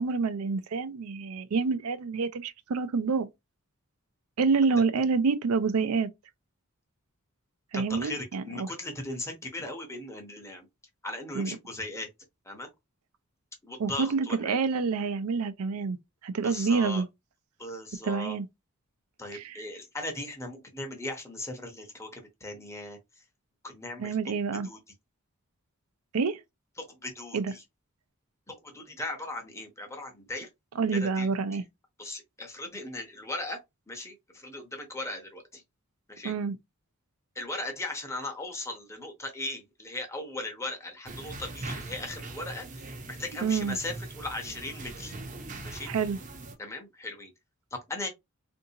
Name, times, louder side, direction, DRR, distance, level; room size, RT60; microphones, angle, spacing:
voice 1, 0.0-3.3 4.4-6.1 7.7-8.7 11.3-11.5 13.8-16.0 16.2-17.1 18.0-18.5 19.3-19.6 24.0-24.7 26.1-26.4 27.3-27.5 30.8-31.6 36.2-36.6 43.4-43.8 45.8-46.2, right 4 dB, 85° right, 0.5 m, -27 dB
voice 2, 7.7-10.7 11.0-12.1 12.4-12.7 13.6-14.6 16.4-17.0 17.6-18.4 19.2-23.0 23.6-24.2 24.6-24.8 26.8-27.6 28.5-30.5 30.9-31.3 32.0-33.6 33.9-35.6 36.1-36.3 37.3-45.1 45.6-45.9 46.6-47.3 47.7-48.1, left 2 dB, 15° left, 0.8 m, -38 dB
sound 1, 41.1-46.6, right 2 dB, 35° right, 0.6 m, -41 dB
3.6 x 2.6 x 2.7 m
head